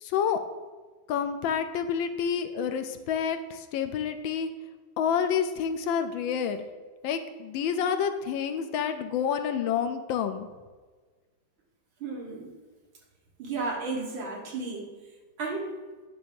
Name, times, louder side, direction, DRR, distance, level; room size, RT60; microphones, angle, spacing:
voice 1, 0.0-0.4 1.1-4.5 5.0-6.7 7.0-10.5, left 7 dB, 80° left, 8 dB, 1.4 m, -28 dB
voice 2, 12.0-12.5 13.4-14.9 15.4-15.7, right 3 dB, 75° right, 0 dB, 2.2 m, -33 dB
9.5 x 3.4 x 6.9 m, 1.4 s
omnidirectional pair, 2.2 m